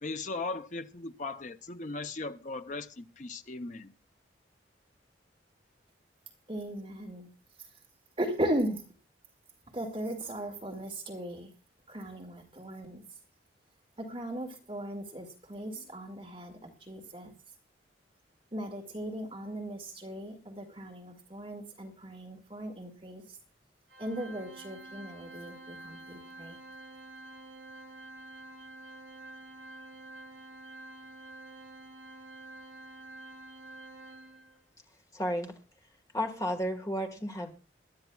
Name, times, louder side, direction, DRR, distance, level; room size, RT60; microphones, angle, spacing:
voice 1, 0.0-3.9, left 3 dB, 40° left, 0.7 m, -38 dB
voice 2, 6.5-7.3 8.2-8.8 9.7-11.5 11.9-13.0 14.0-17.3 18.5-23.4 24.0-26.6, right 1 dB, 30° right, 2.0 m, -37 dB
Organ, 23.9-34.6, right 2 dB, 85° right, 3.3 m, -48 dB
voice 3, 35.1-35.5 36.1-37.5, equal, 20° left, 1.6 m, -32 dB
22.0 x 12.0 x 2.3 m
head